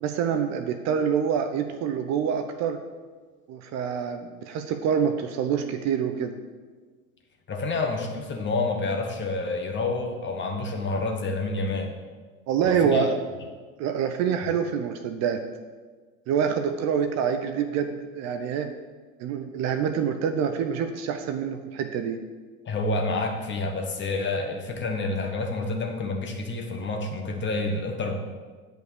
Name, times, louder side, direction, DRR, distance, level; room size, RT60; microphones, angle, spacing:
voice 1, 0.0-2.8 3.5-6.4 12.5-13.1 13.8-15.4 16.3-18.7 19.2-22.2, right 7 dB, 40° right, 7 dB, 0.7 m, -26 dB
voice 2, 7.5-11.9 12.6-13.1 22.6-28.2, left 3 dB, 25° left, 2 dB, 1.5 m, -28 dB
9.1 x 5.3 x 6.7 m, 1.4 s
figure-of-eight pair, 80°, 42 cm